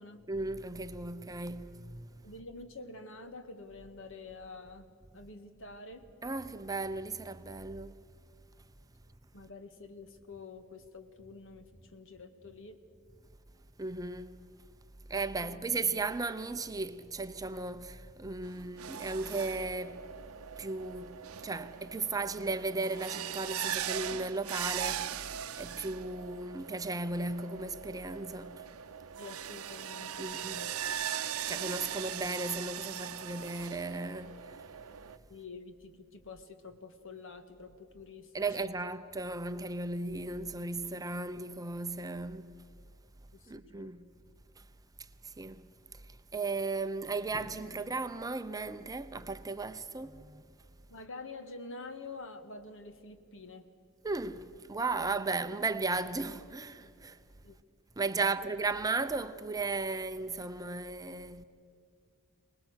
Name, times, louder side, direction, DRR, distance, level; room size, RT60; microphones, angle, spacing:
voice 1, 0.3-2.1 6.2-8.0 13.8-14.4 15.1-20.1 20.6-21.2 21.4-28.6 30.2-30.7 31.5-34.5 38.3-42.6 43.5-44.1 45.2-45.6 46.3-50.4 54.0-57.2 58.0-61.4, right 3 dB, 15° right, 0.6 m, -36 dB
voice 2, 2.2-4.9 5.1-6.1 9.3-12.8 15.4-15.6 29.2-30.8 35.3-38.3 38.6-38.7 43.3-43.9 50.9-53.7 57.4-57.6 58.2-58.4, left 3 dB, 65° left, 1.8 m, -47 dB
sound 1, 18.4-35.2, right 9 dB, 85° right, 0.7 m, -40 dB
24.5 x 19.5 x 8.1 m
head